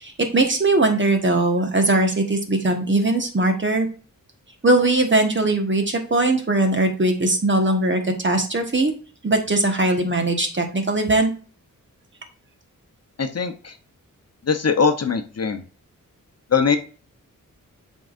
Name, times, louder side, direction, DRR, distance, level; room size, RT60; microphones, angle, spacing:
voice 1, 0.0-3.9 4.6-8.9 9.2-11.3, right 2 dB, 35° right, 4 dB, 1.4 m, -20 dB
voice 2, 13.2-13.7 14.5-15.6 16.5-16.8, left 5 dB, 45° left, 7 dB, 0.9 m, -21 dB
7.8 x 4.7 x 2.6 m, 0.37 s
cardioid pair, 70°, 34 cm